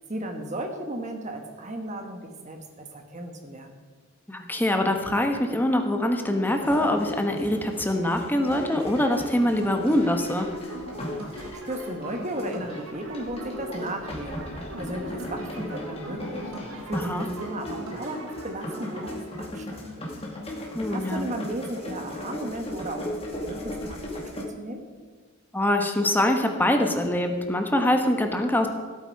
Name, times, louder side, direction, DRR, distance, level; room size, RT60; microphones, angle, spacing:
voice 1, 0.1-3.8 11.2-16.5 16.8-24.8, right 1 dB, 35° right, 5 dB, 1.4 m, -36 dB
voice 2, 4.3-10.5 16.9-17.3 20.7-21.3 25.5-28.7, left 1 dB, 10° left, 4 dB, 1.2 m, -24 dB
sound 1, 6.4-24.4, left 1 dB, 30° left, 2.1 m, -37 dB
sound 2, 8.5-19.2, right 1 dB, 80° right, 1.9 m, -40 dB
16.0 x 8.6 x 4.7 m, 1.6 s
head